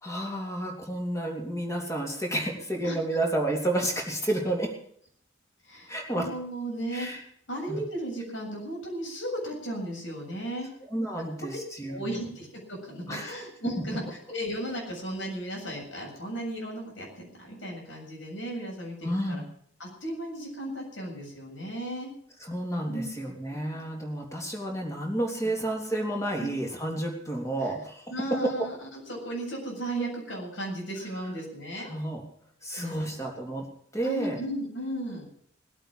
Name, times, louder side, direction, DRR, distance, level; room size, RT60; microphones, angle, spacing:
voice 1, 0.0-4.7 5.9-6.3 6.9-7.2 7.7-7.8 10.8-12.0 13.1-13.4 13.8-13.9 19.0-19.4 22.4-28.0 28.4-28.7 31.9-32.2 32.6-33.7 33.9-34.4, right 1 dB, 15° left, 0 dB, 3.2 m, -31 dB
voice 2, 5.6-7.2 7.5-10.7 11.9-12.5 12.8-14.0 14.3-19.4 19.8-22.1 22.9-23.0 26.3-26.5 27.6-27.7 28.1-31.9 32.8-33.2 34.0-35.3, right 1 dB, 75° left, 0 dB, 7.6 m, -35 dB
19.5 x 8.8 x 7.5 m, 0.62 s
head